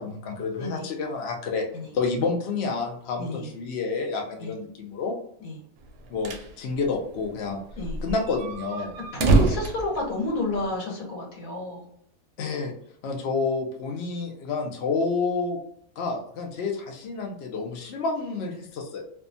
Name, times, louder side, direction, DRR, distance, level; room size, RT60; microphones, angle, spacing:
voice 1, 0.0-1.7 1.9-5.1 6.1-7.6 8.0-8.9 12.4-12.7 13.0-15.6 16.0-19.0, left 4 dB, 60° left, 1 dB, 0.7 m, -29 dB
voice 2, 3.2-3.5 4.4-4.5 5.4-5.6 7.8-8.0 9.1-11.8, left 1 dB, 80° left, -1 dB, 1.3 m, -30 dB
sound 1, 5.9-6.5 6.8-6.9 7.1-7.2 7.7-10.7, right 3 dB, 75° right, 0.9 m, -25 dB
2.7 x 2.2 x 2.6 m, 0.68 s
omnidirectional pair, 1.4 m